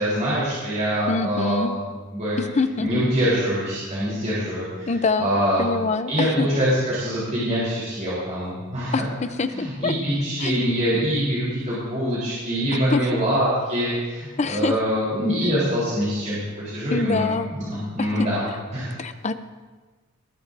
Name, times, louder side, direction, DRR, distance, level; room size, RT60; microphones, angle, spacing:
voice 1, 0.0-1.8 2.1-2.4 2.8-4.9 5.2-5.7 6.1-9.0 9.5-18.4 18.7-18.9, equal, 35° right, -9 dB, 4.0 m, -24 dB
voice 2, 1.1-1.7 2.4-3.0 4.9-5.3 5.6-6.5 8.9-9.0 9.4-9.9 10.4-10.5 12.9-13.0 14.4-14.7 16.9-17.5 18.0-18.1 19.0-19.3, left 3 dB, 35° left, 11 dB, 0.6 m, -24 dB
20.0 x 11.5 x 2.7 m, 1.4 s
head